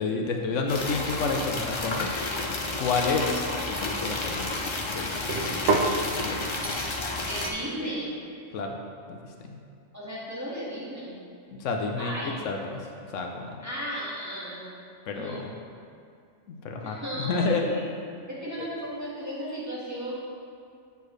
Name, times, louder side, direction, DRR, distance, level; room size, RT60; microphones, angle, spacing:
voice 1, 0.0-2.1 2.8-4.5 4.9-5.2 6.1-6.4 8.5-8.8 9.1-9.2 9.4-9.6 11.6-12.1 12.4-12.9 13.1-13.6 15.1-15.5 16.5-17.7, left 4 dB, 80° left, 2 dB, 1.0 m, -29 dB
sound 1, 0.7-7.5, left 2 dB, 40° left, 0.4 m, -31 dB
sound 2, 2.5-4.7 5.3-6.0 6.6-7.0 7.4-7.7, right 3 dB, 70° right, 1.0 m, -31 dB
voice 2, 7.3-8.1 9.9-11.2 12.0-12.4 13.6-14.7 15.1-15.4 16.8-17.8 18.3-20.1, equal, 15° right, -9 dB, 1.9 m, -35 dB
7.9 x 7.0 x 3.2 m, 2.4 s
omnidirectional pair, 1.3 m